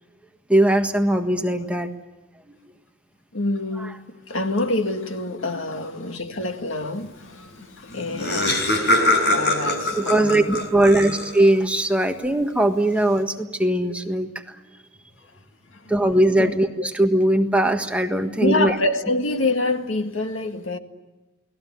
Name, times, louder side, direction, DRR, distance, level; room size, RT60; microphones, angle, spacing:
voice 1, 0.5-1.9 3.8-3.9 10.0-14.5 15.9-18.8, right 1 dB, 5° right, 1.5 m, -20 dB
voice 2, 3.3-4.0 4.3-10.6 15.7-15.9 16.4-16.5 16.8-16.9 18.4-20.8, left 2 dB, 75° left, 2.0 m, -26 dB
Laughter, 7.6-7.7 7.9-11.6, left 1 dB, 60° left, 5.7 m, -23 dB
29.5 x 19.5 x 9.4 m
head